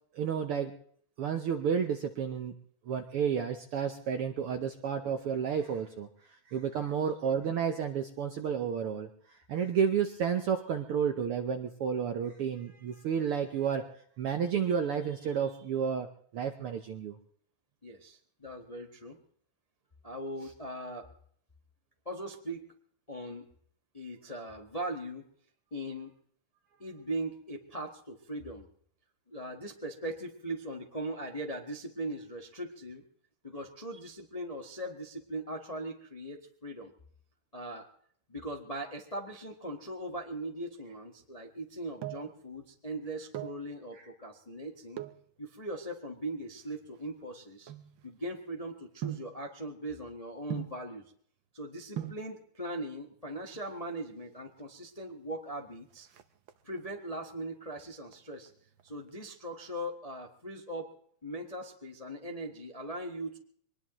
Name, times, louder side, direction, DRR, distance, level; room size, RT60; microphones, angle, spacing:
voice 1, 0.1-0.7 1.2-2.5 2.9-6.1 6.5-13.8 14.2-16.1 16.3-17.1 44.0-44.1, right 7 dB, 70° right, 6 dB, 1.4 m, -31 dB
voice 2, 17.8-19.2 20.0-21.1 22.0-22.7 23.1-23.4 23.9-25.3 25.7-26.2 26.8-28.7 29.3-33.0 33.4-36.9 37.5-37.9 38.3-45.0 45.4-47.7 48.0-51.0 51.5-56.1 56.6-58.5 58.8-60.9 61.2-63.4, right 1 dB, 25° left, 2 dB, 0.7 m, -40 dB
sound 1, 41.6-42.4 43.1-43.7 44.9-45.3 46.0-48.4 49.0-49.4 50.5-50.9 51.7-51.8 52.0-52.3 53.4-54.0 54.3-54.4 54.6-54.7 55.1-55.5 55.8-56.8 57.3-57.7 58.1-59.2 59.5-59.6, right 12 dB, 85° right, 1.0 m, -41 dB
23.5 x 20.0 x 3.1 m, 0.62 s
omnidirectional pair, 3.5 m